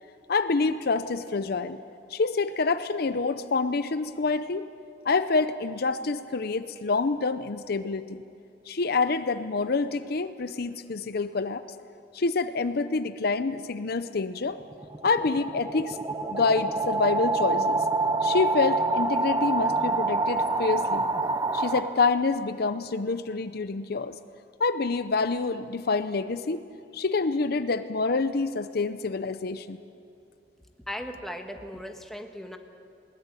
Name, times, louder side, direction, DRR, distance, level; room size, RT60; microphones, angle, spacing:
voice 1, 0.3-1.8 2.1-4.7 5.0-8.2 8.7-11.7 12.1-14.6 15.0-16.0 16.3-17.8 18.2-21.0 21.5-24.2 24.6-26.6 26.9-29.8, left 4 dB, 60° left, 12 dB, 0.7 m, -27 dB
sound 1, 14.6-22.4, right 3 dB, 20° right, 0.8 m, -27 dB
voice 2, 30.9-32.6, equal, ahead, 4 dB, 1.5 m, -37 dB
21.0 x 19.5 x 8.9 m, 2.7 s
head